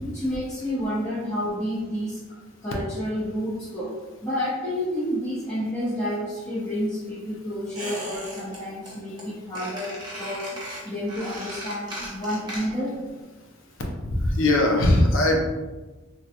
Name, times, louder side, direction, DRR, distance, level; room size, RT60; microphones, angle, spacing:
voice 1, 0.0-2.2 2.6-13.0, equal, 15° left, -12 dB, 0.7 m, -30 dB
Squeak, 7.7-8.6 8.8-9.2 9.5-12.9 13.2-13.3, right 1 dB, 20° right, 0.8 m, -36 dB
voice 2, 14.0-15.4, left 1 dB, 80° left, 1 dB, 0.6 m, -20 dB
3.4 x 2.3 x 2.8 m, 1.2 s
head